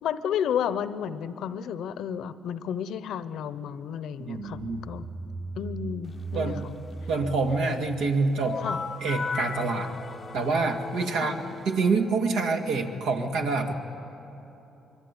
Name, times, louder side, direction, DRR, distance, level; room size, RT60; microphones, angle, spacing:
voice 1, 0.0-5.1 5.6-6.7 8.6-8.8 11.1-11.4, left 8 dB, 80° left, 14 dB, 0.8 m, -32 dB
voice 2, 4.2-4.8 6.3-6.6 7.1-8.6 9.0-9.9 10.3-13.7, right 3 dB, 90° right, 3 dB, 2.1 m, -26 dB
sound 1, 4.5-9.0, right 3 dB, 25° right, 1.5 m, -39 dB
sound 2, 8.4-12.0, left 5 dB, 35° left, 0.6 m, -36 dB
25.0 x 22.5 x 9.8 m, 3.0 s
cardioid pair, 90°, 0 cm